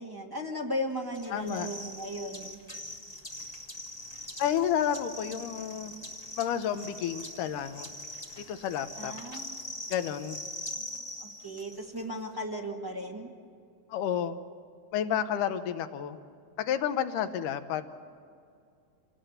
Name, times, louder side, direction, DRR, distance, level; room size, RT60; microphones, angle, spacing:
voice 1, 0.0-2.6 9.0-9.6 10.7-13.3, equal, 10° right, -1 dB, 1.0 m, -37 dB
sound 1, 1.1-12.0, left 1 dB, 40° left, 0.5 m, -43 dB
voice 2, 1.3-1.7 4.4-5.9 6.4-7.9 8.5-9.1 9.9-10.4 13.9-14.4 14.9-16.2 16.6-17.8, left 9 dB, 90° left, 9 dB, 2.5 m, -30 dB
27.0 x 18.5 x 8.0 m, 2.4 s
omnidirectional pair, 3.6 m